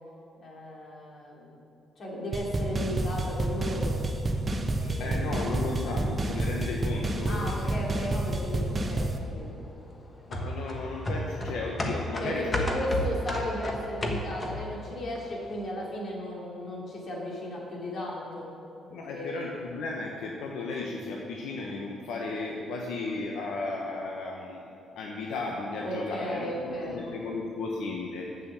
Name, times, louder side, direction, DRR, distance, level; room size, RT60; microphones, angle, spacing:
voice 1, 0.4-1.6 2.0-4.0 4.7-5.6 7.2-9.6 12.2-18.5 19.2-19.4 25.8-27.0, equal, 50° left, -3 dB, 2.7 m, -35 dB
sound 1, 2.3-9.2, right 2 dB, 30° right, 0.9 m, -29 dB
voice 2, 5.0-7.5 7.9-8.2 10.3-12.6 18.9-28.3, left 3 dB, 85° left, -1 dB, 1.0 m, -35 dB
sound 2, 10.3-14.8 15.2-15.3, left 1 dB, 30° left, 1.4 m, -32 dB
8.3 x 7.2 x 6.7 m, 2.9 s
cardioid pair, 90°, 0 cm